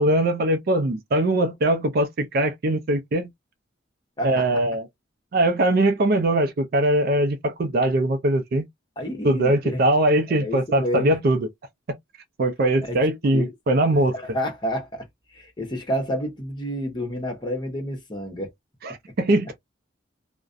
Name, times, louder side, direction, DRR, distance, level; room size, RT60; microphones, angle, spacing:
voice 1, 0.0-3.3 4.2-4.9 5.3-8.7 9.2-11.5 11.9-12.0 12.4-14.1 18.8-19.6, right 1 dB, 50° right, 0.4 m, -21 dB
voice 2, 9.0-9.8 10.3-11.2 12.8-13.0 13.3-13.5 14.1-15.1 15.3-18.5, equal, 25° left, 0.9 m, -29 dB
2.4 x 2.1 x 2.5 m
head